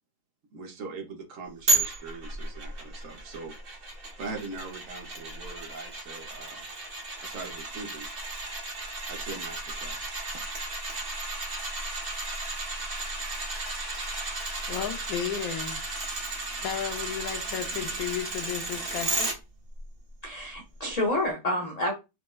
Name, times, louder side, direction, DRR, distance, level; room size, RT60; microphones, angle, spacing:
voice 1, 0.5-3.6 4.2-6.6 7.2-8.1 9.1-10.4, right 4 dB, 65° right, 1.1 m, -41 dB
sound 1, 1.7-19.3 19.8-19.9, right 2 dB, 45° right, 1.0 m, -33 dB
voice 2, 14.7-15.8 16.2-19.3, left 9 dB, 85° left, 1.1 m, -34 dB
voice 3, 20.2-21.9, left 1 dB, 65° left, 0.4 m, -28 dB
4.3 x 2.1 x 2.2 m
omnidirectional pair, 1.5 m